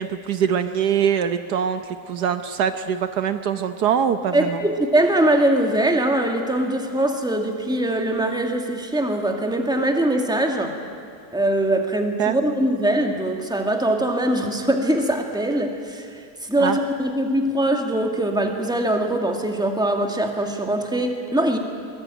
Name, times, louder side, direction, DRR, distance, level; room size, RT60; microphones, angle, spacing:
voice 1, 0.0-4.6 12.2-12.4 16.6-16.8, right 8 dB, 70° right, 9 dB, 1.4 m, -23 dB
voice 2, 4.3-10.8 11.3-21.6, right 1 dB, ahead, 3 dB, 2.0 m, -22 dB
23.0 x 21.0 x 9.1 m, 2.4 s
omnidirectional pair, 1.8 m